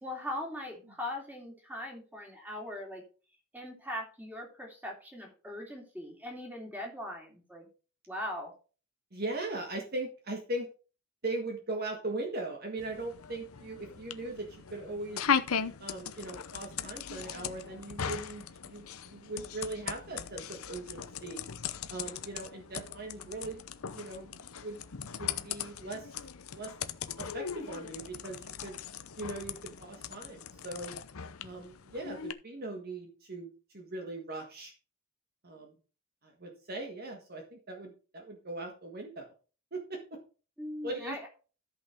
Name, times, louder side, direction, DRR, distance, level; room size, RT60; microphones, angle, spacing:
voice 1, 0.0-3.0 3.5-7.7 8.1-8.5 40.6-41.3, left 1 dB, 10° right, 1 dB, 3.0 m, -40 dB
voice 2, 9.1-10.7 11.2-15.2 15.8-21.5 21.9-23.7 23.9-24.8 25.2-26.1 26.5-26.7 27.2-28.8 29.2-31.0 31.4-34.7 35.4-35.7 36.2-39.3 39.7-40.2 40.8-41.3, right 2 dB, 45° right, 2 dB, 1.7 m, -39 dB
sound 1, 12.8-32.3, left 7 dB, 85° left, 0.8 m, -38 dB
13.5 x 5.8 x 4.5 m, 0.37 s
head